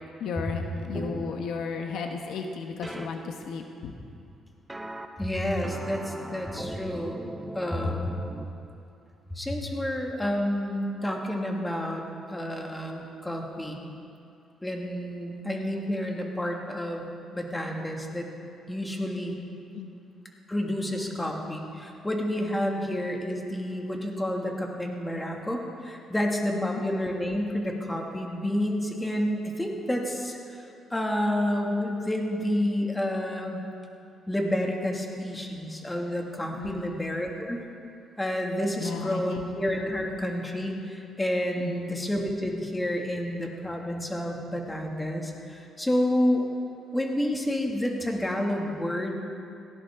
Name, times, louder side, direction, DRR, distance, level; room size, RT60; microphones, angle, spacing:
voice 1, 0.2-0.6 0.9-3.9 19.7-19.9 26.5-26.8 36.6-37.0 38.8-39.5 41.6-41.9, left 5 dB, 75° left, 3 dB, 1.2 m, -34 dB
sound 1, 0.9-1.3 2.8-3.1 4.7-5.1 5.6-8.4, right 1 dB, 10° right, 0.9 m, -38 dB
voice 2, 5.2-7.2 7.5-8.1 9.3-13.9 14.6-17.0 17.3-18.3 18.7-19.3 20.5-30.4 30.9-33.6 34.3-37.6 38.2-46.4 46.9-49.1, left 1 dB, 10° left, 0 dB, 2.3 m, -29 dB
18.0 x 17.0 x 3.8 m, 2.6 s
cardioid pair, 90°, 0 cm